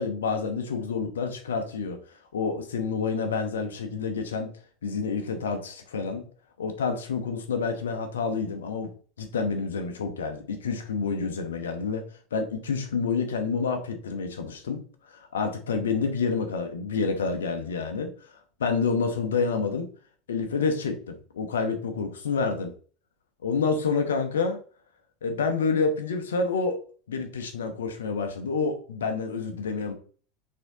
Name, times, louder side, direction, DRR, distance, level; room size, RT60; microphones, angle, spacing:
voice 1, 0.0-2.0 2.3-4.5 4.8-6.3 6.6-8.9 9.2-12.0 12.3-18.1 18.6-19.9 20.3-22.7 23.4-24.6 25.2-26.8 27.1-29.9, left 5 dB, 85° left, 6 dB, 0.7 m, -28 dB
4.2 x 3.7 x 2.7 m, 0.42 s
hypercardioid pair, 80°, 0 cm